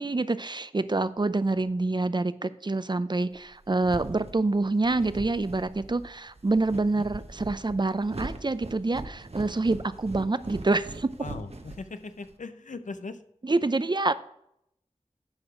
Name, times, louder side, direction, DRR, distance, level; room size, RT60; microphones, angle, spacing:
voice 1, 0.0-11.1 13.4-14.1, right 2 dB, 35° right, 14 dB, 0.5 m, -27 dB
sound 1, 3.4-12.3, right 2 dB, 55° right, 0.9 m, -41 dB
voice 2, 11.2-13.2, left 3 dB, 85° left, 10 dB, 0.6 m, -39 dB
10.5 x 4.9 x 4.9 m, 0.75 s
wide cardioid pair, 45°, 12 cm